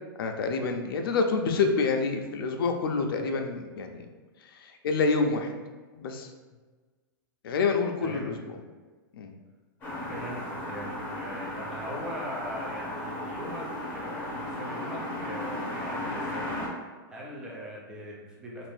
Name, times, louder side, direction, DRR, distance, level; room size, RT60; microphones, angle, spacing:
voice 1, 0.2-4.1 4.4-5.5 5.9-6.3 7.4-8.5 9.1-9.3, left 4 dB, 70° left, 4 dB, 0.5 m, -27 dB
voice 2, 8.0-8.3 10.1-18.7, equal, 5° right, -4 dB, 0.4 m, -41 dB
sound 1, 9.8-16.7, left 1 dB, 15° left, 0.9 m, -35 dB
2.5 x 2.5 x 3.4 m, 1.4 s
supercardioid pair, 165°, 12 cm